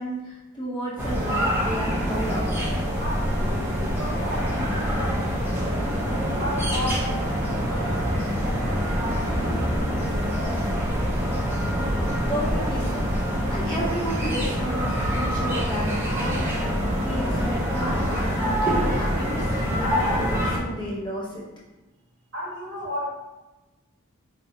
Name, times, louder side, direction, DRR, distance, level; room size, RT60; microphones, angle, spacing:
voice 1, 0.0-2.5 11.7-13.1 13.5-16.4 16.7-16.8 17.0-21.4, equal, 20° left, -7 dB, 0.9 m, -32 dB
sound 1, 1.0-20.6, equal, 10° right, 0.5 m, -25 dB
voice 2, 3.0-5.9 6.4-10.6 22.3-23.1, equal, 50° right, -5 dB, 1.5 m, -35 dB
4.3 x 3.1 x 2.8 m, 1.1 s
head